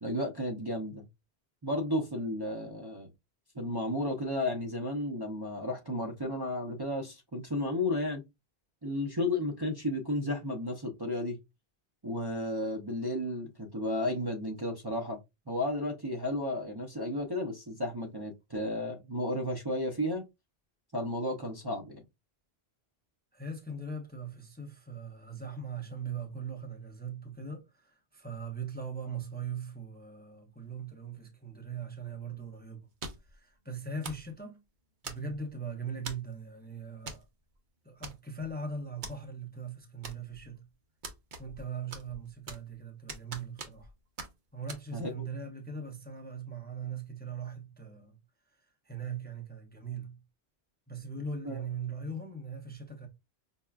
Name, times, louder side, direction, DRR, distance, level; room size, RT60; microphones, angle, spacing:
voice 1, 0.0-1.1 1.6-3.1 3.5-8.2 8.8-11.4 12.0-15.2 15.5-20.2 20.9-22.0 44.9-45.2 51.4-51.7, left 1 dB, 30° right, 0.6 m, -33 dB
voice 2, 23.3-32.9 33.3-34.6 35.0-37.2 37.8-40.7 41.4-43.9 44.5-48.2 48.8-50.2 50.9-53.1, right 4 dB, 10° left, 0.6 m, -40 dB
sound 1, 33.0-33.4 34.0-34.3 35.0-35.5 36.1-36.3 37.1-37.3 37.5-37.6 38.0-38.5 39.0-39.2 40.0-40.5 41.0-41.6 41.9-42.7 43.1-43.9 44.2-44.3 44.7-44.8, right 3 dB, 50° right, 0.9 m, -42 dB
5.5 x 2.2 x 2.3 m
omnidirectional pair, 1.1 m